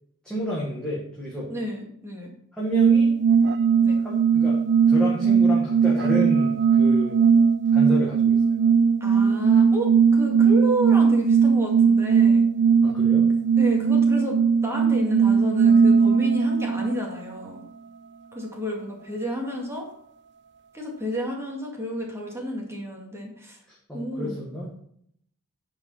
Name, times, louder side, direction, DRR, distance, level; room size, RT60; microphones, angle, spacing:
voice 1, 0.2-1.5 2.6-3.1 4.0-4.6 4.9-7.2 7.7-8.4 12.8-13.2 23.7-24.7, equal, 5° left, -6 dB, 1.8 m, -30 dB
voice 2, 1.5-2.3 3.8-4.0 9.0-12.4 13.6-17.7 18.3-19.9 20.7-23.6 23.9-24.4, equal, 10° right, -1 dB, 2.2 m, -31 dB
sound 1, 2.7-17.1, right 6 dB, 50° right, 0.4 m, -19 dB
9.5 x 4.9 x 5.6 m, 0.68 s
head